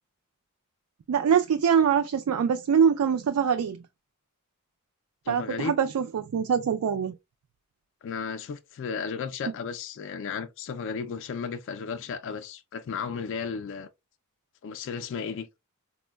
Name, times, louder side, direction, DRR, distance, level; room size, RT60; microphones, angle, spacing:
voice 1, 1.1-3.8 5.3-7.1, right 7 dB, 80° right, 0.3 m, -24 dB
voice 2, 5.3-5.7 8.0-13.9 14.6-15.5, left 6 dB, 55° left, 0.3 m, -34 dB
4.3 x 2.1 x 2.2 m
head